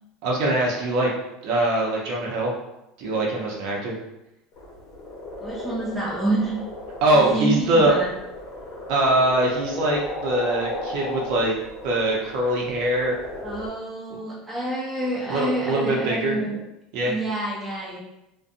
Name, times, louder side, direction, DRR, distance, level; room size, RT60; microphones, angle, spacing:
voice 1, 0.2-1.1 1.4-2.5 3.0-4.0 7.0-8.0 8.9-11.5 11.8-13.2 15.3-16.4 16.9-17.1, right 1 dB, 65° right, -2 dB, 0.7 m, -22 dB
sound 1, 4.5-13.7, left 1 dB, 50° left, 0.7 m, -36 dB
voice 2, 5.4-6.6 7.1-8.1 13.4-16.6 17.1-18.0, right 2 dB, 10° right, -6 dB, 0.8 m, -28 dB
2.4 x 2.2 x 2.6 m, 0.89 s
supercardioid pair, 135°, 0 cm